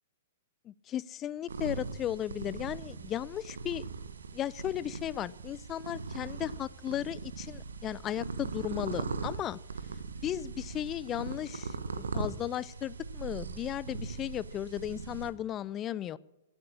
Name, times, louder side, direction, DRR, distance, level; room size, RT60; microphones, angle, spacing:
voice 1, 0.7-3.8 4.3-9.6 10.2-16.2, left 11 dB, 25° left, 20 dB, 0.4 m, -35 dB
sound 1, 1.5-15.3, right 4 dB, 75° right, 1.2 m, -40 dB
21.5 x 8.1 x 6.4 m, 1.0 s
figure-of-eight pair, 110°, 0 cm